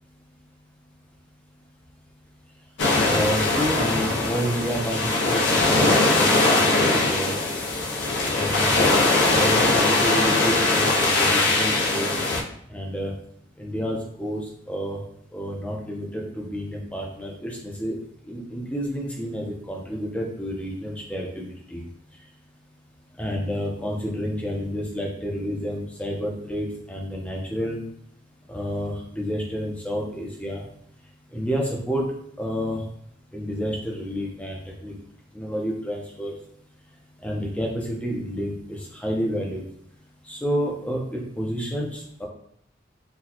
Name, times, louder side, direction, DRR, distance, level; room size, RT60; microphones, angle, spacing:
sound 1, 2.8-12.4, left 2 dB, 80° left, 0.6 m, -21 dB
voice 1, 3.0-7.3 8.3-8.8 9.3-12.2 12.7-13.1 13.6-15.0 15.3-18.0 18.2-21.8 23.2-27.8 28.5-30.6 31.3-32.0 32.4-32.8 33.3-34.9 35.3-36.4 37.2-39.6 40.2-42.3, equal, 5° left, -2 dB, 0.6 m, -29 dB
3.9 x 2.3 x 2.9 m, 0.69 s
head